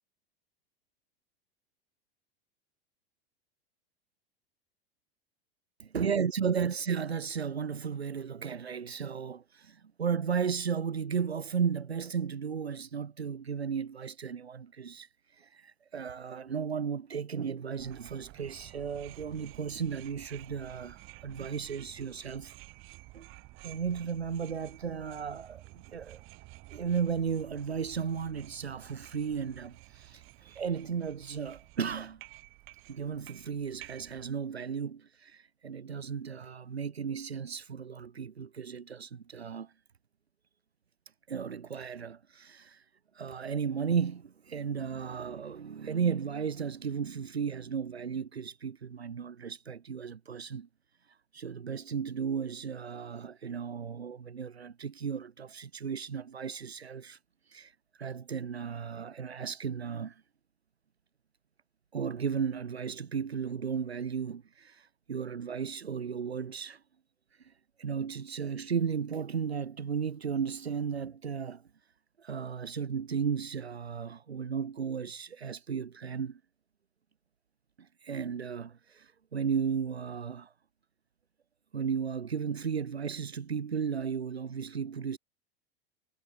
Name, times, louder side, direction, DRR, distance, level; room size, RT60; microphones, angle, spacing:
voice 1, 5.8-22.6 23.1-23.3 23.6-26.2 26.7-32.2 32.9-39.7 41.3-42.8 43.1-50.7 51.3-57.2 57.5-60.2 61.9-66.8 67.4-67.5 67.8-71.6 72.2-76.4 77.8-80.5 81.7-85.2, right 6 dB, 75° right, 1.8 m, -35 dB
sound 1, 17.8-34.3, right 22 dB, 40° right, 4.9 m, -52 dB
figure-of-eight pair, 90°, 32 cm